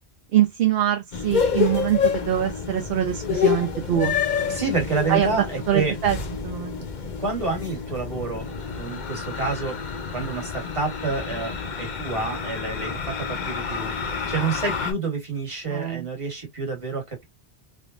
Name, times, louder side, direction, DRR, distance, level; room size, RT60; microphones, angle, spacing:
voice 1, 0.3-4.2 5.1-6.2 6.4-6.7 15.7-16.1, right 11 dB, 70° right, 0.8 m, -23 dB
sound 1, 1.1-14.9, left 6 dB, 50° left, 0.7 m, -28 dB
voice 2, 4.5-5.9 6.8-6.9 7.2-9.8 10.1-17.2, right 4 dB, 30° right, 1.3 m, -29 dB
3.4 x 2.1 x 2.4 m
omnidirectional pair, 1.1 m